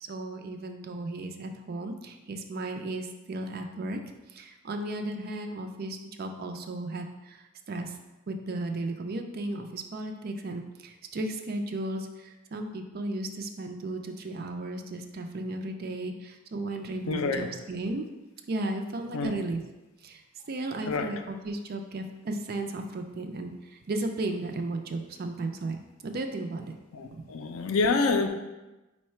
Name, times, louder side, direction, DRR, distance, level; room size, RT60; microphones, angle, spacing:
voice 1, 0.0-4.0 4.3-7.4 7.7-7.9 8.3-18.0 18.5-19.6 20.0-20.2 20.5-25.8 26.0-26.7 27.1-27.3, right 2 dB, 45° right, 5 dB, 0.4 m, -35 dB
voice 2, 17.1-17.5 19.1-19.4 20.8-21.1 26.9-28.3, left 4 dB, 85° left, 6 dB, 0.4 m, -27 dB
4.6 x 2.2 x 4.3 m, 1.1 s
head